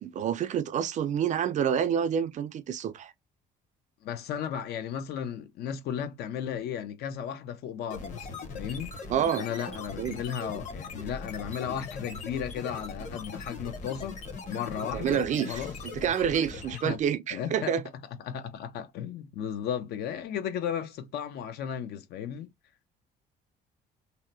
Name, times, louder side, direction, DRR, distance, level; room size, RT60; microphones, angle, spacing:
voice 1, 0.0-3.1 9.1-10.2 14.9-15.7 15.9-17.8, right 8 dB, 45° right, 0.4 m, -28 dB
voice 2, 4.0-14.2 14.5-15.7 16.8-17.0 17.3-17.7 18.2-22.5, left 8 dB, 75° left, 0.6 m, -35 dB
sound 1, 7.9-17.1, left 4 dB, 45° left, 1.0 m, -40 dB
2.7 x 2.1 x 3.9 m
cardioid pair, 110°, 17 cm